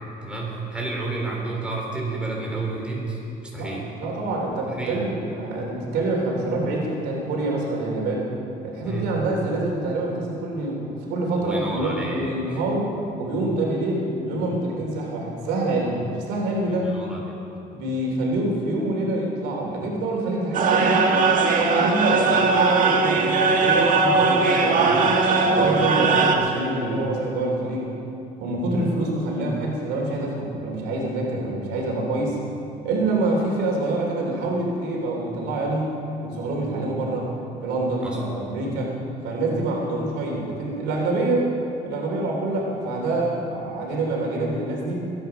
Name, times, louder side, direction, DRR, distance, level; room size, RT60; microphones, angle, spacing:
voice 1, 0.2-3.8 4.8-5.1 8.8-9.1 11.4-12.3 16.7-17.4 38.0-38.2, right 2 dB, 5° right, -3 dB, 3.7 m, -31 dB
voice 2, 4.0-8.3 8.6-12.9 13.2-16.0 16.3-16.9 17.7-21.2 21.5-25.1 25.4-27.9 28.4-32.4 32.8-35.9 36.2-37.3 37.6-38.9 39.2-41.5 41.8-45.0, right 2 dB, 90° right, -1 dB, 3.2 m, -26 dB
sound 1, 20.5-26.4, right 4 dB, 50° right, 1.7 m, -19 dB
21.5 x 9.4 x 5.6 m, 3.0 s
cardioid pair, 110°, 17 cm